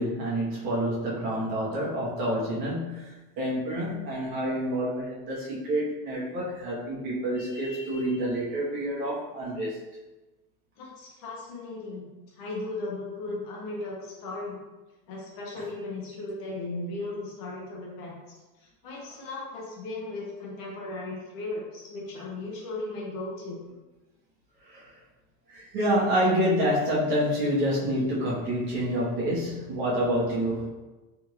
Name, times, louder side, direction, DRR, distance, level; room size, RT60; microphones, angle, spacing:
voice 1, 0.0-3.1 3.4-9.8 24.7-24.8 25.5-30.7, equal, 50° right, -6 dB, 1.3 m, -28 dB
voice 2, 10.8-14.6 15.1-18.4 18.8-23.6, left 2 dB, 45° left, -2 dB, 0.9 m, -36 dB
3.6 x 2.5 x 3.1 m, 1.1 s
supercardioid pair, 145°, 46 cm